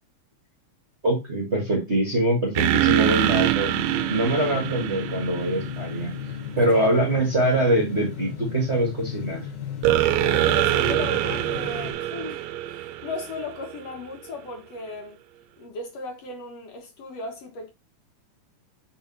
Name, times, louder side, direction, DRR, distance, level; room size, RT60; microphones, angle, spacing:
voice 1, 1.0-3.7 4.1-6.1 6.5-9.5, right 1 dB, 30° right, 1.4 m, -23 dB
sound 1, 2.6-6.2 9.8-13.8, right 14 dB, 80° right, 1.6 m, -24 dB
sound 2, 3.7-11.9, left 8 dB, 90° left, 2.9 m, -35 dB
voice 2, 10.4-15.2 15.6-17.7, left 3 dB, 60° left, 2.5 m, -36 dB
5.5 x 5.3 x 4.1 m
omnidirectional pair, 3.4 m